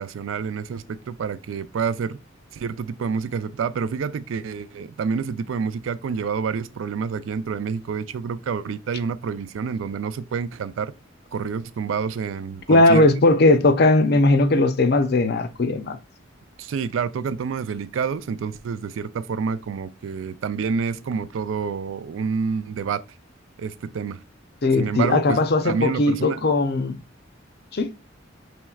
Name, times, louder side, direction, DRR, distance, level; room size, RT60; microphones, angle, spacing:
voice 1, 0.0-2.2 2.5-10.9 11.3-13.1 16.6-23.0 23.6-24.2 24.7-26.4, right 6 dB, 80° right, 0.4 m, -28 dB
voice 2, 12.7-16.0 24.6-27.0 27.7-27.9, left 2 dB, 55° left, 0.5 m, -18 dB
5.8 x 3.1 x 2.3 m
head